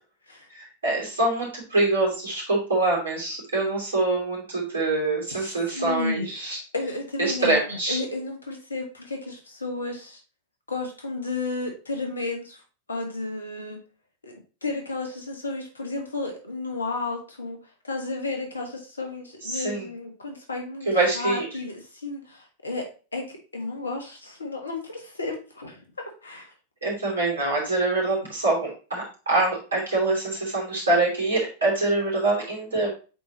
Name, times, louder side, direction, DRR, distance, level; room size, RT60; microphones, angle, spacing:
voice 1, 0.5-6.6 7.2-8.0 19.4-19.9 20.9-21.5 26.8-32.9, right 2 dB, 70° right, -2 dB, 3.0 m, -25 dB
voice 2, 5.3-6.3 6.7-10.2 10.7-12.6 12.9-13.8 14.2-14.3 14.6-20.9 21.1-26.5, left 3 dB, 75° left, 3 dB, 1.6 m, -33 dB
8.1 x 4.3 x 3.0 m, 0.34 s
figure-of-eight pair, 90°, 0 cm